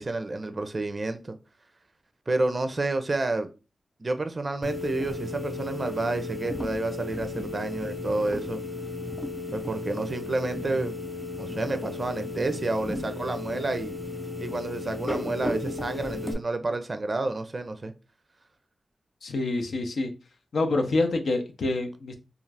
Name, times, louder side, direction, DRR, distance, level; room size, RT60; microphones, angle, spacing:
voice 1, 0.0-1.4 2.3-3.5 4.0-8.6 9.5-10.9 11.4-14.0 14.4-17.9, right 2 dB, 40° right, 8 dB, 0.4 m, -29 dB
sound 1, 4.6-16.3, left 2 dB, 15° left, 0.8 m, -34 dB
voice 2, 19.2-20.1 20.5-22.1, left 2 dB, 80° left, 4 dB, 0.5 m, -26 dB
2.4 x 2.4 x 3.2 m, 0.31 s
cardioid pair, 60°, 0 cm